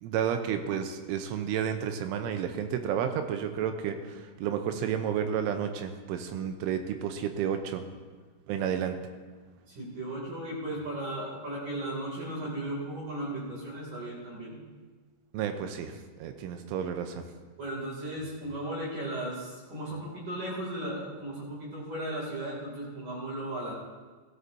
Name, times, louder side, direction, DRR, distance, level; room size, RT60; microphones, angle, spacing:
voice 1, 0.0-7.8 8.5-9.0 15.3-17.2, right 8 dB, 85° right, 7 dB, 3.1 m, -31 dB
voice 2, 9.7-14.6 17.6-23.7, right 1 dB, 45° right, -4 dB, 3.7 m, -36 dB
16.5 x 13.0 x 2.7 m, 1.4 s
omnidirectional pair, 5.7 m